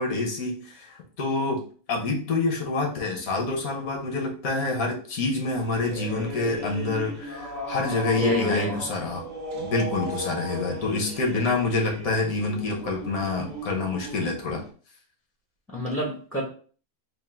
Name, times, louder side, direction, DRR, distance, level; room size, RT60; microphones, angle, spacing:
voice 1, 0.0-1.6 1.9-9.2 9.5-14.6, left 3 dB, 75° left, 1 dB, 1.4 m, -27 dB
sound 1, 5.5-14.7, equal, 35° right, 0.8 m, -36 dB
voice 2, 8.2-8.8 10.6-10.8 15.7-16.4, left 1 dB, ahead, -4 dB, 0.6 m, -28 dB
3.6 x 2.5 x 3.7 m, 0.42 s
omnidirectional pair, 1.5 m